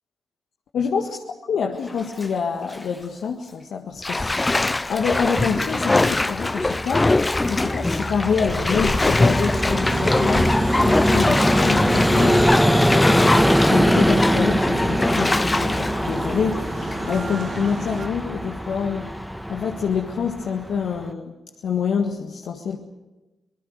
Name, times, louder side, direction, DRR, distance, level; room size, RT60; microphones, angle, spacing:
voice 1, 0.7-1.2 1.5-19.2 19.5-21.3 21.6-22.8, left 6 dB, 70° left, 1 dB, 1.7 m, -27 dB
Bathtub (filling or washing), 1.8-2.3 2.7-2.8 4.0-17.1 17.6-17.7, left 2 dB, 25° left, 0.7 m, -23 dB
Vehicle, 6.4-21.1, equal, ahead, 1.5 m, -22 dB
sound 1, 9.8-18.1, right 6 dB, 70° right, 1.9 m, -34 dB
26.0 x 20.0 x 6.6 m, 1.1 s
hypercardioid pair, 45°, 0 cm